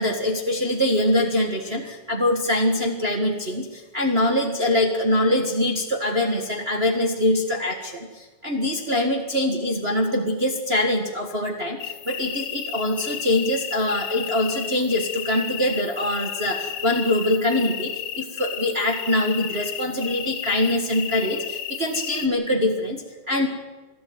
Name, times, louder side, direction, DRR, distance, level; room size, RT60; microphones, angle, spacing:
voice 1, 0.0-11.8 12.0-23.5, left 1 dB, 30° right, 2 dB, 1.2 m, -23 dB
sound 1, 11.8-22.3, left 11 dB, 70° left, 1.8 m, -33 dB
22.0 x 13.0 x 9.3 m, 1.3 s
omnidirectional pair, 3.6 m